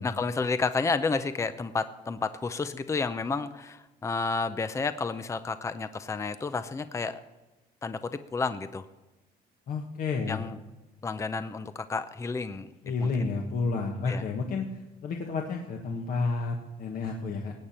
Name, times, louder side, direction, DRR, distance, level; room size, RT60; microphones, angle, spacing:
voice 1, 0.0-7.2 7.8-8.8 10.3-10.6 11.0-13.3 14.1-14.2, left 4 dB, 15° left, 11 dB, 0.6 m, -31 dB
voice 2, 9.7-10.4 12.8-14.7 15.0-17.5, left 4 dB, 55° left, 1 dB, 1.5 m, -30 dB
18.0 x 8.7 x 4.3 m, 1.1 s
cardioid pair, 110°, 17 cm